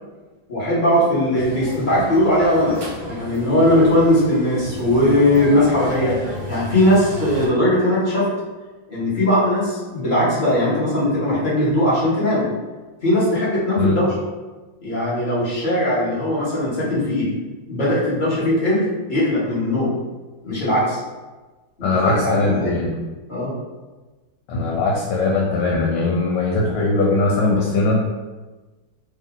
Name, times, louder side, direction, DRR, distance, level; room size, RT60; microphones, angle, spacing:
voice 1, 0.5-8.3 8.9-12.5 13.0-14.1 14.8-17.3 17.7-19.9 20.4-21.0 21.8-22.7 23.3-23.5, left 1 dB, 30° left, -9 dB, 1.0 m, -19 dB
sound 1, 1.3-7.5, equal, 80° right, 0.6 m, -32 dB
voice 2, 21.8-22.9 24.5-28.0, left 3 dB, 90° left, -2 dB, 1.5 m, -20 dB
3.5 x 2.6 x 3.7 m, 1.2 s
omnidirectional pair, 2.3 m